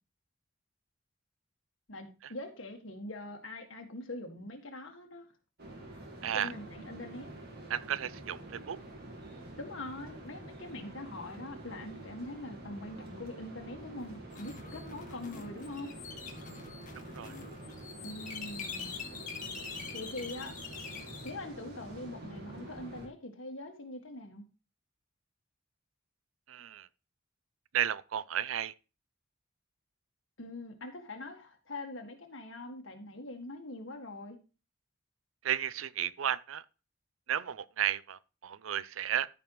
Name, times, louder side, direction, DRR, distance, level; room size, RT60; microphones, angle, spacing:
voice 1, 1.9-5.3 6.3-7.3 9.6-15.9 18.0-18.9 19.9-20.5 21.2-24.4 30.4-34.4, left 2 dB, 70° left, 1.8 m, -43 dB
sound 1, 5.6-23.1, right 1 dB, 50° right, 2.0 m, -47 dB
voice 2, 7.7-8.8 17.1-17.3 26.5-26.9 27.7-28.7 35.4-36.6 37.3-39.3, right 9 dB, 85° right, 0.5 m, -33 dB
sound 2, 14.3-21.3, left 6 dB, 40° left, 1.6 m, -44 dB
14.0 x 5.3 x 3.0 m
head